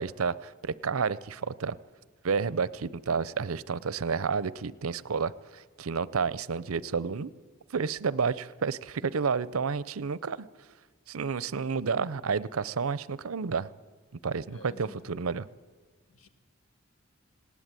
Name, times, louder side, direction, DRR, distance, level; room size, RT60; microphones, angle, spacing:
voice 1, 0.0-1.8 2.2-7.3 7.7-10.5 11.1-13.7 14.2-15.5, right 5 dB, 85° right, 19 dB, 0.6 m, -30 dB
voice 2, 14.5-15.0 16.1-16.3, left 2 dB, 75° left, 9 dB, 1.7 m, -49 dB
19.5 x 18.0 x 9.0 m, 1.5 s
head